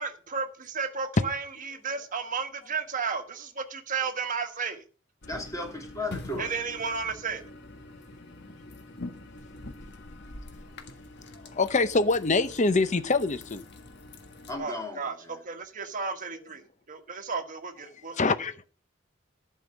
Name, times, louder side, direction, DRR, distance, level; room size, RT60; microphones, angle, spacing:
voice 1, 0.0-4.8 6.4-7.4 14.6-16.6 16.9-18.5, right 5 dB, 40° right, 7 dB, 1.4 m, -33 dB
sound 1, 5.2-14.6, left 2 dB, 55° left, 1.5 m, -45 dB
voice 2, 5.3-6.5 14.5-15.4, left 2 dB, 15° left, 1 dB, 3.0 m, -35 dB
voice 3, 11.5-13.6 18.1-18.5, left 3 dB, 35° left, 12 dB, 0.7 m, -24 dB
11.5 x 5.6 x 7.5 m, 0.38 s
head